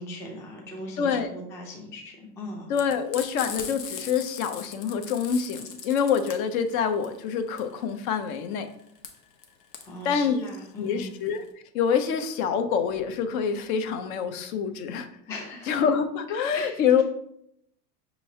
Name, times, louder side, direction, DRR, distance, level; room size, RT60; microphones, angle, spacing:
voice 1, 0.0-2.7 9.8-11.1 15.3-15.9 16.5-17.0, left 1 dB, 5° left, 0 dB, 0.3 m, -39 dB
voice 2, 1.0-1.3 2.7-8.7 10.0-10.4 10.8-11.4 11.7-15.1 15.7-17.0, left 7 dB, 60° left, 8 dB, 0.7 m, -26 dB
Frying (food), 2.7-11.5, left 7 dB, 85° left, 0.8 m, -40 dB
5.5 x 3.0 x 2.7 m, 0.73 s
hypercardioid pair, 105°, 49 cm